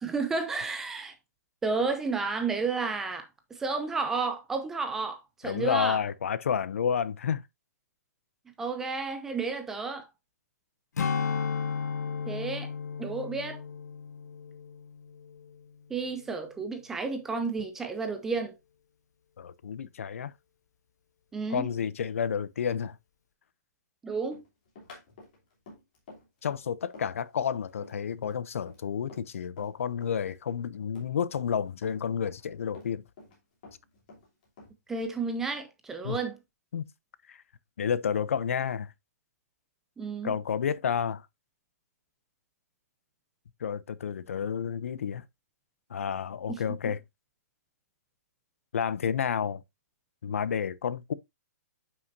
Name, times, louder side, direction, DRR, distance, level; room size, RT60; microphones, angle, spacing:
voice 1, 0.0-1.1 1.6-6.0 8.6-10.1 12.3-12.7 13.0-13.6 15.9-18.5 21.3-21.7 24.0-24.4 34.9-36.4 40.0-40.3, right 4 dB, 5° right, 0.4 m, -31 dB
voice 2, 5.4-7.4 19.4-20.3 21.5-23.0 26.4-33.0 36.0-36.2 36.7-36.9 37.3-37.4 37.8-38.9 40.2-41.2 43.6-45.2 45.9-47.0 48.7-49.6 50.2-51.1, left 7 dB, 50° left, 0.5 m, -30 dB
Strum, 11.0-15.7 16.0-16.3, left 6 dB, 75° left, 1.1 m, -34 dB
Run, 24.3-29.7 30.0-31.6 31.8-33.4 33.6-35.0, left 3 dB, 30° left, 3.1 m, -50 dB
9.4 x 5.8 x 2.6 m
hypercardioid pair, 175°, 9 cm